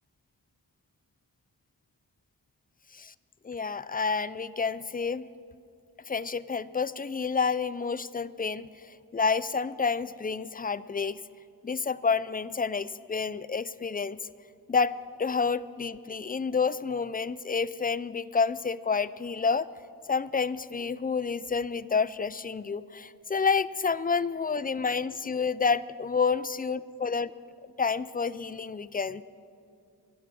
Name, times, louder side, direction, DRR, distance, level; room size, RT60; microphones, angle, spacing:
voice 1, 3.4-5.3 6.1-11.2 11.6-14.2 14.7-14.9 15.2-19.7 20.1-27.3 27.8-29.2, left 5 dB, 25° left, 17 dB, 0.4 m, -29 dB
22.0 x 10.5 x 6.1 m, 2.4 s
wide cardioid pair, 70°, 40 cm